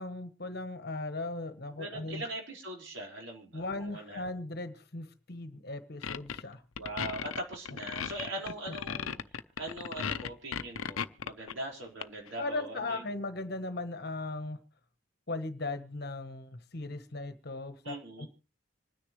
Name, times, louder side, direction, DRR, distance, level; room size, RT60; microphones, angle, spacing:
voice 1, 0.0-2.2 3.5-6.6 8.9-9.0 12.4-14.6 15.3-18.3, left 2 dB, 50° left, 10 dB, 1.1 m, -38 dB
voice 2, 1.8-4.3 6.8-9.2 9.6-13.0 17.8-18.3, right 1 dB, 65° right, 1 dB, 4.7 m, -41 dB
sound 1, 6.0-6.4 6.8-11.5 12.0-12.4, left 7 dB, 85° left, 0.6 m, -36 dB
26.5 x 10.0 x 3.2 m, 0.32 s
head